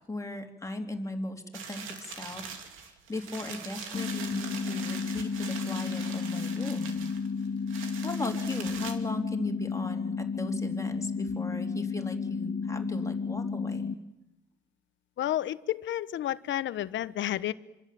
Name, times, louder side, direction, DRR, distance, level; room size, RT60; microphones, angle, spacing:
voice 1, 0.1-2.5 2.8-7.0 8.0-13.9, left 2 dB, 15° left, 3 dB, 3.3 m, -37 dB
sound 1, 1.5-8.9, right 6 dB, 90° right, 2.6 m, -42 dB
sound 2, 3.9-13.9, left 5 dB, 35° left, 1.4 m, -32 dB
voice 2, 15.2-17.5, left 12 dB, 70° left, 15 dB, 1.0 m, -31 dB
26.0 x 25.0 x 7.6 m, 0.96 s
cardioid pair, 90°, 20 cm